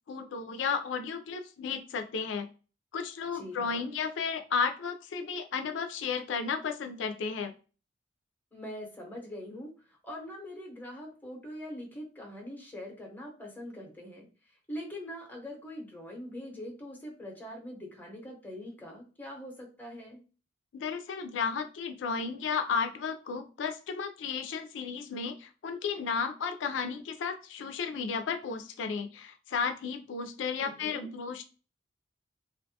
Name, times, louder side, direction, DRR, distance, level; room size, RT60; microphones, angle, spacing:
voice 1, 0.1-2.5 2.9-7.5 20.7-31.4, left 5 dB, 85° left, 6 dB, 0.4 m, -33 dB
voice 2, 3.3-3.9 8.5-20.2 30.6-31.1, left 1 dB, 10° left, 0 dB, 0.8 m, -43 dB
2.4 x 2.2 x 2.7 m, 0.35 s
head